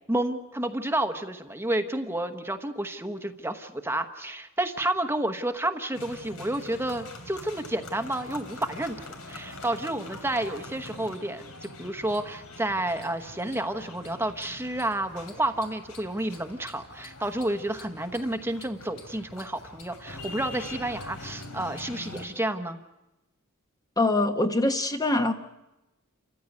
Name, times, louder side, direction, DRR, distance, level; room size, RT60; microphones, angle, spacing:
voice 1, 0.1-22.8, right 1 dB, 10° right, 8 dB, 1.1 m, -30 dB
sound 1, 5.9-22.3, left 2 dB, 85° left, 3.5 m, -44 dB
voice 2, 24.0-25.3, left 2 dB, 15° left, 6 dB, 1.0 m, -23 dB
29.0 x 15.0 x 9.5 m, 1.0 s
head